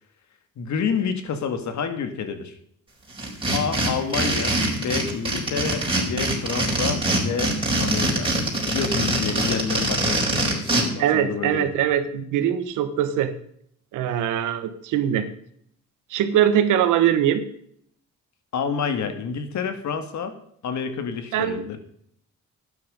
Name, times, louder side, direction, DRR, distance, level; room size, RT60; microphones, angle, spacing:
voice 1, 0.6-2.6 3.5-8.3 8.7-11.7 18.5-20.3 20.6-21.8, left 6 dB, 70° left, 8 dB, 2.1 m, -29 dB
sound 1, 3.2-10.8, right 1 dB, 15° right, 5.0 m, -23 dB
voice 2, 11.0-13.3 13.9-15.3 16.1-17.4 21.3-21.7, right 10 dB, 90° right, 10 dB, 1.4 m, -22 dB
12.0 x 9.6 x 5.4 m, 0.67 s
cardioid pair, 90°, 30 cm